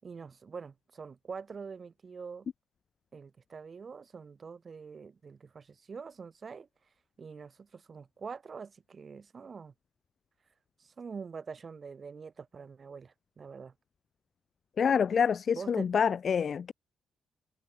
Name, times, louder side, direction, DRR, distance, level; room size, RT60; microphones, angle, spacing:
voice 1, 0.0-2.5 3.1-6.7 7.2-9.7 10.8-13.7 15.5-15.9, right 5 dB, 30° right, 7.1 m, -45 dB
voice 2, 14.8-16.7, left 7 dB, 40° left, 0.5 m, -27 dB
wide cardioid pair, 180°, 0 cm